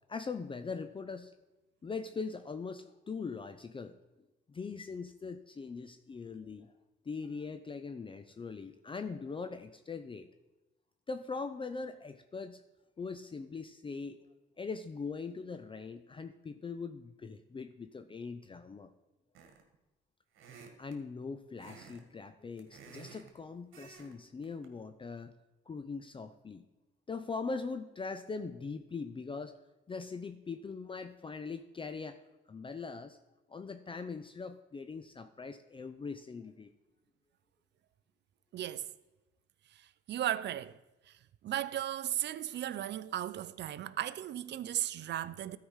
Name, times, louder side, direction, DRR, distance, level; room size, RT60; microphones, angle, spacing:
voice 1, 0.1-1.3 1.8-4.0 4.5-6.7 7.1-10.3 11.1-12.6 13.0-14.2 14.6-18.9 20.8-25.3 25.7-26.6 27.1-29.6 29.9-32.2 32.5-33.2 33.5-36.7, left 4 dB, 25° left, 0.5 m, -41 dB
sound 1, 19.3-19.8 20.3-21.0 21.6-22.0 22.3-23.3 23.7-24.1 24.4-24.7, right 5 dB, 85° right, 1.5 m, -53 dB
voice 2, 38.5-38.9 39.7-40.8 41.1-45.6, right 12 dB, 60° right, 0.5 m, -36 dB
12.5 x 4.9 x 5.6 m
cardioid pair, 90°, 20 cm